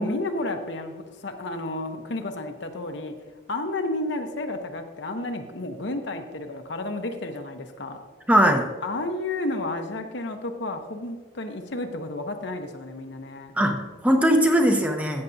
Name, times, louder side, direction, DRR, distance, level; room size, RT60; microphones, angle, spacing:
voice 1, 0.0-3.1 3.5-8.0 8.8-13.5, left 2 dB, 60° left, 5 dB, 0.9 m, -31 dB
voice 2, 8.3-8.6 13.6-15.2, equal, 5° right, 3 dB, 0.7 m, -20 dB
14.0 x 8.0 x 2.7 m, 1.3 s
head